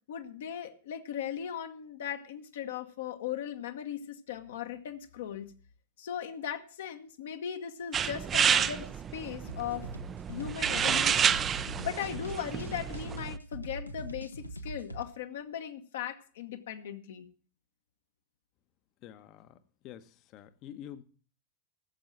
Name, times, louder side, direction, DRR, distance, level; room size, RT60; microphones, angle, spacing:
voice 1, 0.1-5.5 6.0-9.9 10.3-11.4 11.8-17.3, left 9 dB, 60° left, 1.2 m, -38 dB
sound 1, 7.9-13.4, right 8 dB, 25° right, 0.6 m, -30 dB
sound 2, 9.5-15.0, right 1 dB, 85° left, 1.0 m, -42 dB
voice 2, 19.0-19.6 19.8-21.0, left 10 dB, 40° left, 1.0 m, -47 dB
14.5 x 7.4 x 7.7 m
figure-of-eight pair, 90°, 0 cm